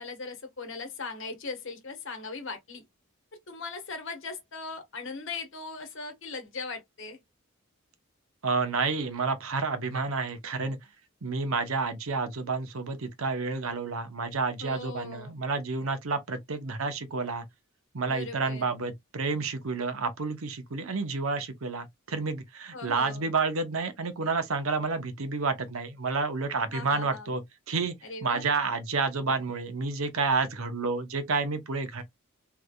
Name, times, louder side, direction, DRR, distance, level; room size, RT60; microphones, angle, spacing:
voice 1, 0.0-2.8 3.5-7.2 14.6-15.3 18.1-18.8 22.7-23.3 26.7-27.3 28.0-28.5, left 4 dB, 60° left, 1.1 m, -39 dB
voice 2, 8.4-10.8 11.2-17.5 17.9-27.4 27.7-28.0 28.2-32.0, right 4 dB, 75° right, 0.8 m, -30 dB
3.4 x 3.2 x 2.3 m
head